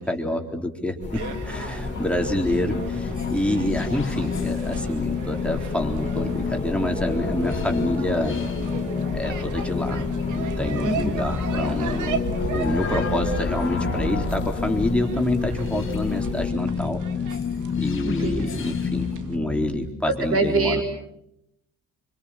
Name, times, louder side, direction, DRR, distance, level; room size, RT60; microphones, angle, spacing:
voice 1, 0.0-8.4 9.1-10.1 10.3-12.2 12.5-17.0 17.8-20.8, left 1 dB, 5° left, 2 dB, 3.8 m, -27 dB
sound 1, 1.0-19.9, left 6 dB, 40° left, 2.2 m, -29 dB
sound 2, 1.0-16.5, left 3 dB, 25° left, 4.3 m, -34 dB
sound 3, 1.1-19.4, right 6 dB, 80° right, 2.0 m, -36 dB
voice 2, 10.8-11.4 18.0-18.4 20.1-20.8, right 3 dB, 50° right, 4 dB, 6.4 m, -25 dB
25.5 x 25.5 x 7.3 m, 0.80 s
cardioid pair, 90°, 30 cm